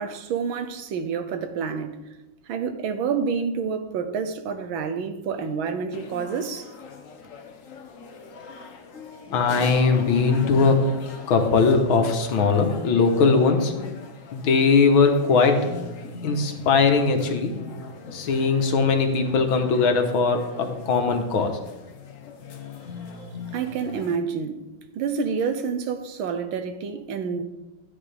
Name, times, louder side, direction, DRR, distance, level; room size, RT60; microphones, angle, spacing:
voice 1, 0.0-2.0 2.5-6.7 23.5-24.6 24.9-27.4, right 6 dB, 90° right, 1.6 m, -28 dB
sound 1, 5.9-24.2, left 4 dB, 55° left, 1.0 m, -40 dB
voice 2, 9.3-10.8 11.3-13.7 14.3-15.7 16.2-17.5 18.1-21.5, left 4 dB, 90° left, 2.0 m, -20 dB
12.5 x 9.8 x 3.3 m
omnidirectional pair, 2.2 m